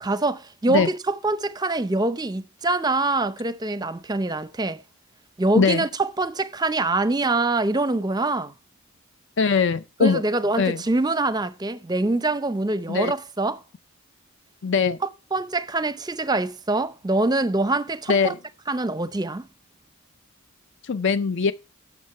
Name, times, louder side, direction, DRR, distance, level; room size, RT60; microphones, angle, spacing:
voice 1, 0.0-4.8 5.4-8.5 10.0-13.6 15.3-18.3 18.7-19.5, right 2 dB, 20° right, 0.6 m, -24 dB
voice 2, 9.4-10.2 10.6-10.8 12.9-13.1 14.6-15.0 18.1-18.4 20.8-21.5, left 5 dB, 55° left, 0.5 m, -21 dB
9.5 x 6.5 x 5.6 m
head